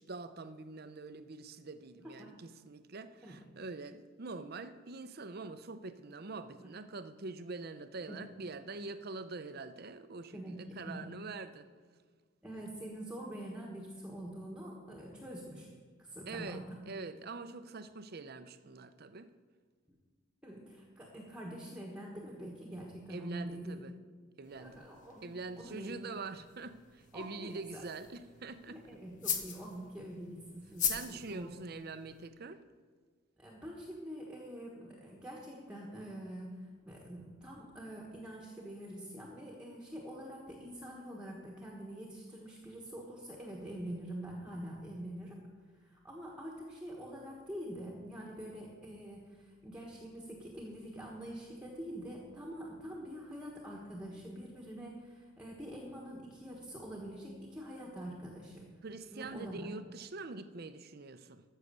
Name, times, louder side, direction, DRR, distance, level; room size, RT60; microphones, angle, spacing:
voice 1, 0.0-11.7 16.3-19.3 23.1-23.9 24.4-24.8 25.2-29.0 30.8-32.6 58.8-61.4, right 3 dB, 45° right, 11 dB, 0.6 m, -44 dB
voice 2, 10.3-11.1 12.4-15.7 16.0-16.8 20.4-23.8 24.6-25.3 25.6-25.9 27.1-27.8 28.7-31.5 33.4-36.5 36.9-45.4 45.8-58.7 59.1-59.7, right 1 dB, 5° right, -2 dB, 1.3 m, -45 dB
sound 1, 24.4-32.3, left 7 dB, 35° left, 1.0 m, -42 dB
13.5 x 6.6 x 6.7 m, 1.5 s
head